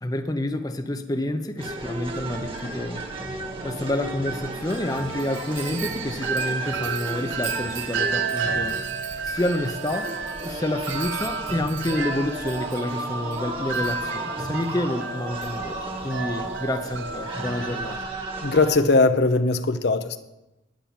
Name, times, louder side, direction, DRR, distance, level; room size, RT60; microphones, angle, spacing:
voice 1, 0.0-3.1 3.6-8.8 9.2-10.2 10.4-18.0, left 1 dB, 20° left, 7 dB, 0.7 m, -28 dB
sound 1, 1.6-18.8, right 2 dB, 25° right, 1.5 m, -34 dB
Wind chime, 4.6-18.0, right 5 dB, 75° right, 0.8 m, -32 dB
voice 2, 18.4-20.2, left 3 dB, 55° left, 10 dB, 0.7 m, -20 dB
10.0 x 10.0 x 7.4 m, 0.97 s
head